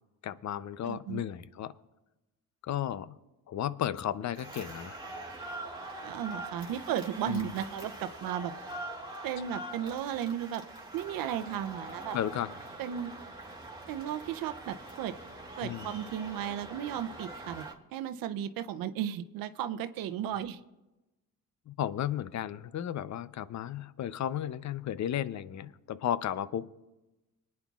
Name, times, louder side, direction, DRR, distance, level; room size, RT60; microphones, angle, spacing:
voice 1, 0.2-1.7 2.6-3.1 3.5-5.0 7.3-7.5 12.1-12.5 15.6-15.9 21.7-26.7, left 10 dB, 50° left, 16 dB, 0.6 m, -34 dB
voice 2, 0.8-1.2 6.0-8.5 9.2-10.6 10.9-12.2 12.8-13.1 13.9-15.1 15.6-17.7 17.9-20.6, right 10 dB, 75° right, 11 dB, 0.7 m, -35 dB
sound 1, 4.3-17.7, right 2 dB, 15° right, 2.3 m, -43 dB
25.5 x 9.6 x 2.4 m, 1.0 s
supercardioid pair, 65°, 35 cm